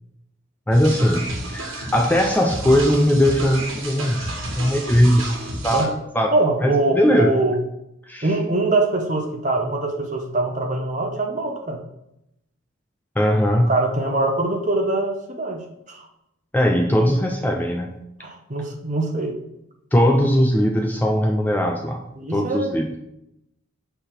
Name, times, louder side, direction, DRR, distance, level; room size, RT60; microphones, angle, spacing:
voice 1, 0.7-4.2 4.6-6.3 6.6-7.3 8.1-8.3 13.2-13.8 16.5-18.0 19.9-22.0 22.3-22.9, equal, 10° left, 2 dB, 0.4 m, -19 dB
sound 1, 0.7-5.9, right 1 dB, 70° right, 1.4 m, -31 dB
voice 2, 6.3-7.6 8.2-11.8 13.7-16.1 18.2-19.4 20.0-20.2 22.2-22.7, right 2 dB, 35° right, 4 dB, 0.8 m, -23 dB
6.4 x 3.4 x 5.8 m, 0.84 s
head